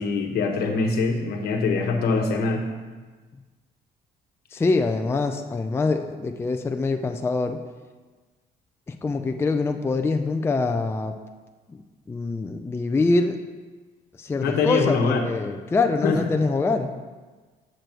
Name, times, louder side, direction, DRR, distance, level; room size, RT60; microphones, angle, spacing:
voice 1, 0.0-2.7 14.4-15.2 16.0-16.2, left 4 dB, 70° left, 3 dB, 1.1 m, -23 dB
voice 2, 4.5-7.6 8.9-11.2 11.7-11.8 12.1-13.4 14.2-16.9, left 3 dB, 15° left, 6 dB, 0.4 m, -24 dB
6.6 x 6.2 x 4.5 m, 1.4 s
cardioid pair, 110°, 17 cm